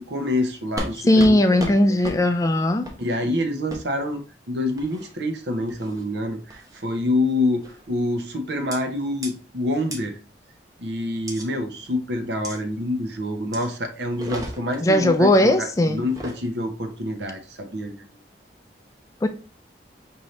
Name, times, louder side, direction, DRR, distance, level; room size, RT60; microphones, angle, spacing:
voice 1, 0.0-2.0 3.0-10.2 10.8-17.9, left 1 dB, 80° right, 0.8 m, -27 dB
sound 1, 0.8-0.9 1.2-1.3 1.6-1.7 2.0-2.2 2.8-3.0 3.7-3.8 4.8-5.1 5.7-6.0 6.5-6.8 7.6-7.9 8.7-8.8 9.2-9.3 9.9-10.0 11.3-11.4 12.4-12.6 13.5-13.7 14.1-14.8 16.0-16.4, right 1 dB, 20° right, 0.8 m, -34 dB
voice 2, 1.1-2.9 14.8-16.0 19.2-19.3, left 1 dB, 20° left, 0.3 m, -18 dB
5.3 x 2.8 x 3.1 m
head